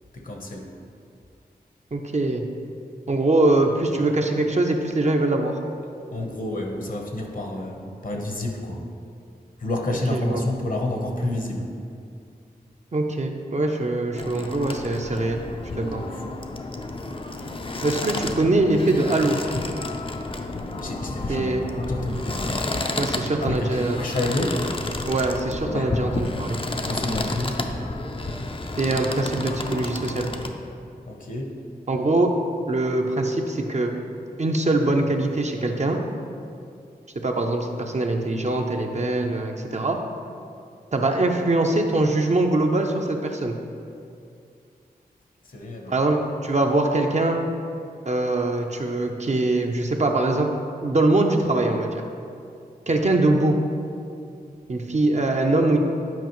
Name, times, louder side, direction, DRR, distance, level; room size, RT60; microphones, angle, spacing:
voice 1, 0.1-0.7 6.1-8.8 9.6-11.7 15.7-16.2 20.8-22.5 23.4-24.6 25.7-25.9 26.7-27.6 31.1-31.5 45.5-45.9, left 1 dB, 55° left, 1 dB, 1.0 m, -29 dB
voice 2, 1.9-2.4 3.1-5.6 10.1-10.5 12.9-15.4 15.8-16.0 17.8-19.4 21.3-21.6 23.0-24.0 25.1-26.6 28.8-30.3 31.9-32.3 32.7-33.9 34.4-36.0 37.2-40.0 40.9-43.6 45.9-47.4 48.1-50.5 50.8-52.0 52.9-53.6 54.7-55.8, right 2 dB, 45° right, 3 dB, 0.6 m, -22 dB
sound 1, 14.2-30.5, left 2 dB, 30° left, 0.5 m, -31 dB
9.2 x 4.9 x 3.1 m, 2.4 s
wide cardioid pair, 60°, 17 cm